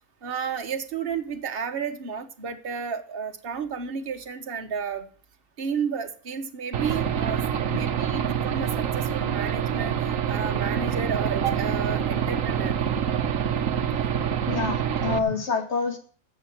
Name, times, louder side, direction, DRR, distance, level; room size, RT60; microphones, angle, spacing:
voice 1, 0.2-5.1 5.6-7.4 7.7-9.9 10.3-12.7 14.0-14.1, right 6 dB, 40° right, 5 dB, 1.5 m, -32 dB
Aircraft / Engine, 6.7-15.2, right 8 dB, 65° right, 1.3 m, -26 dB
voice 2, 14.5-16.0, left 4 dB, 50° left, 5 dB, 2.5 m, -27 dB
11.5 x 7.7 x 8.9 m, 0.43 s
omnidirectional pair, 1.5 m